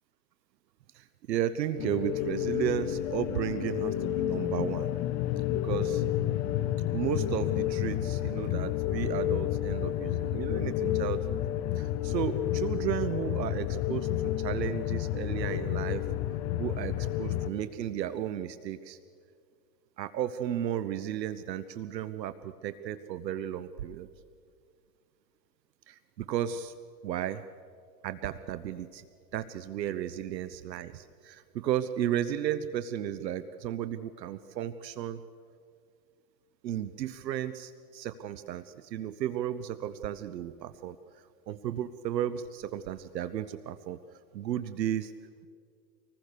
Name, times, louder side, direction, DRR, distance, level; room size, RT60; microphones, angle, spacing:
voice 1, 0.9-4.9 5.5-6.0 6.9-11.4 11.8-16.0 16.6-19.0 20.0-24.1 25.9-26.7 27.0-27.4 28.0-29.1 29.3-35.2 36.6-41.0 41.5-44.0 44.3-45.1, right 11 dB, 80° right, 12 dB, 1.0 m, -34 dB
sound 1, 1.8-17.5, left 13 dB, 35° left, 1.0 m, -30 dB
26.0 x 20.0 x 6.7 m, 2.2 s
hypercardioid pair, 140°, 50 cm